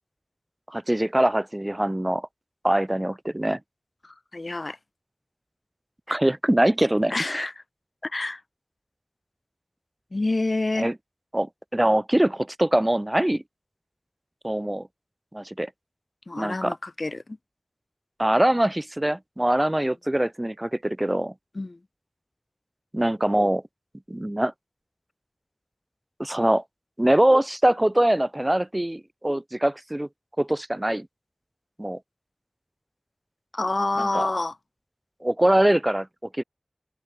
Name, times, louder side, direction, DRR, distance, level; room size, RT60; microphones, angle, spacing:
voice 1, 0.7-2.3 2.6-3.6 6.1-7.5 10.8-11.0 11.3-13.4 14.4-14.9 15.3-15.7 16.4-16.8 18.2-21.3 22.9-23.6 24.1-24.5 26.2-26.6 27.0-30.1 30.4-31.1 31.8-32.0 34.0-34.3 35.2-36.1 36.4-36.5, right 1 dB, 25° right, 2.1 m, -23 dB
voice 2, 4.0-4.8 7.1-7.5 8.0-8.4 10.1-10.9 16.3-17.4 21.5-21.8 33.5-34.6, left 2 dB, 65° left, 4.0 m, -28 dB
wide cardioid pair, 45°, 0 cm